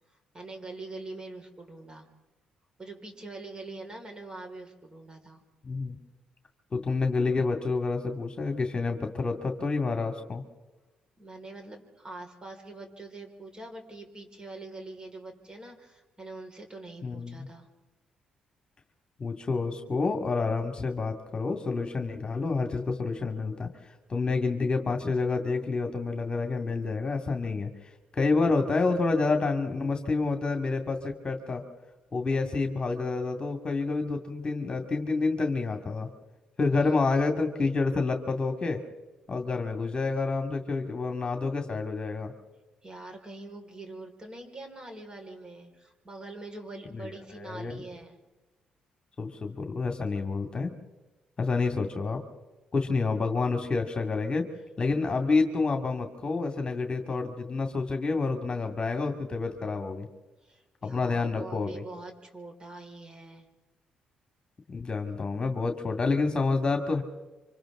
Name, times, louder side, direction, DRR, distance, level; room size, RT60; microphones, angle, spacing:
voice 1, 0.1-2.1 2.8-5.4 11.2-17.7 42.8-48.2 60.4-63.5, right 2 dB, 30° right, 3 dB, 5.3 m, -44 dB
voice 2, 5.6-6.0 6.7-10.4 17.0-17.5 19.2-23.7 24.1-31.6 32.1-36.1 36.6-38.8 39.3-42.3 46.9-47.8 49.2-50.7 51.4-52.2 52.7-54.5 54.8-60.1 60.8-61.8 64.7-67.0, left 3 dB, 35° left, 4 dB, 2.4 m, -28 dB
28.0 x 25.5 x 3.9 m, 1.1 s
supercardioid pair, 60°, 3 cm